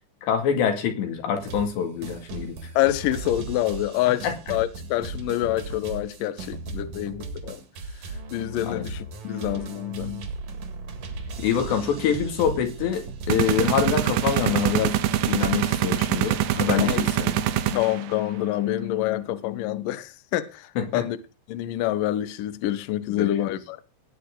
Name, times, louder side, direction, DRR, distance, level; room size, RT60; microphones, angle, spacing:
voice 1, 0.2-2.7 4.2-4.3 8.6-8.9 11.4-15.0 15.2-17.4 20.8-21.0 23.2-23.6, left 8 dB, 70° left, 4.3 m, -26 dB
sound 1, 1.4-1.8 2.0-15.7, right 3 dB, 55° right, 2.4 m, -37 dB
voice 2, 2.8-7.6 8.3-10.3 13.5-13.7 16.6-17.1 17.7-21.2 21.5-23.8, left 14 dB, 85° left, 1.9 m, -27 dB
sound 2, 13.3-18.2, right 12 dB, 75° right, 2.9 m, -24 dB
18.5 x 9.7 x 3.8 m
omnidirectional pair, 5.3 m